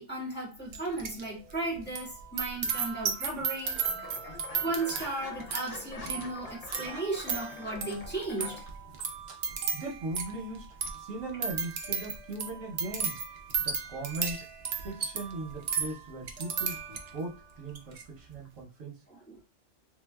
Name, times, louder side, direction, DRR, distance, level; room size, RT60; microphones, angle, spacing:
voice 1, 0.0-3.8 4.2-8.7 19.1-19.4, right 2 dB, 10° left, 1.3 m, -35 dB
sound 1, 0.7-1.2 1.5-17.3 17.7-18.0, right 6 dB, 65° right, 0.7 m, -35 dB
sound 2, 2.6-3.3 3.6-3.7 3.9-4.0 4.3-8.7 9.0-9.1, left 3 dB, 50° left, 0.9 m, -48 dB
sound 3, 3.6-8.6, left 6 dB, 85° left, 1.0 m, -47 dB
voice 2, 9.7-13.2 13.6-14.4 14.8-18.9, right 2 dB, 80° right, 1.2 m, -39 dB
3.4 x 2.7 x 2.2 m
omnidirectional pair, 1.3 m